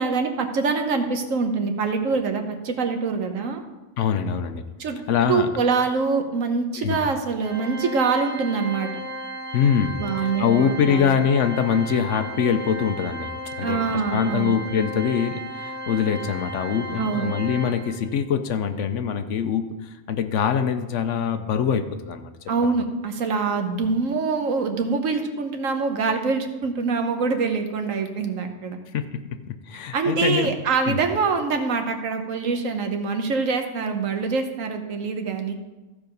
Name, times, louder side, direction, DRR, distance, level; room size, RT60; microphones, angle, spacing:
voice 1, 0.0-3.6 4.8-5.0 5.3-8.9 10.0-11.2 13.6-14.5 17.0-17.3 22.5-28.8 29.9-35.5, right 4 dB, 75° right, 5 dB, 1.4 m, -24 dB
voice 2, 4.0-4.6 5.1-5.5 6.8-7.0 9.5-13.3 13.6-22.3 22.6-22.7 28.9-30.5 30.9-31.0, left 7 dB, 70° left, 8 dB, 1.0 m, -24 dB
Organ, 7.4-18.2, equal, 10° left, 1.0 m, -35 dB
14.5 x 4.9 x 5.2 m, 1.1 s
omnidirectional pair, 1.4 m